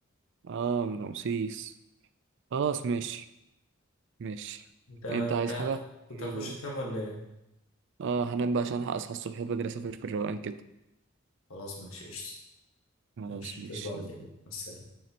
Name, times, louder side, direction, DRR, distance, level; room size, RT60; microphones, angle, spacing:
voice 1, 0.4-1.7 2.5-3.2 4.2-4.6 5.1-5.8 6.2-6.5 8.0-10.6 13.2-14.1, right 5 dB, 60° right, 12 dB, 0.4 m, -32 dB
voice 2, 4.9-5.7 6.2-7.2 11.5-12.3 13.3-14.8, left 1 dB, 85° left, -2 dB, 1.6 m, -38 dB
6.7 x 6.3 x 2.9 m, 0.91 s
head